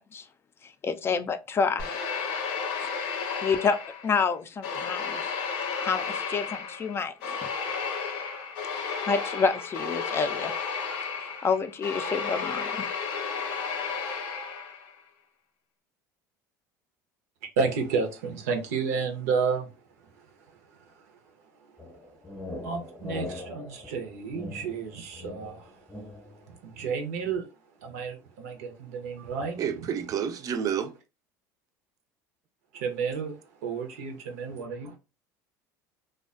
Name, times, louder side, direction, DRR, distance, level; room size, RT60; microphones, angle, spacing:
voice 1, 0.8-2.0 2.8-2.9 3.4-5.3 5.8-7.4 8.8-10.5 11.4-12.9, left 5 dB, 30° left, 0.3 m, -28 dB
sound 1, 1.8-4.2 4.6-14.9, left 5 dB, 75° left, 0.6 m, -33 dB
voice 2, 17.6-19.7 22.6-25.7 26.5-27.5 27.8-29.6 32.7-35.0, right 5 dB, 90° right, 0.6 m, -31 dB
sound 2, 21.8-26.4, left 2 dB, 10° left, 0.7 m, -41 dB
voice 3, 29.6-30.9 34.8-34.9, right 8 dB, 45° right, 0.4 m, -30 dB
2.4 x 2.2 x 2.3 m
supercardioid pair, 95°, 8 cm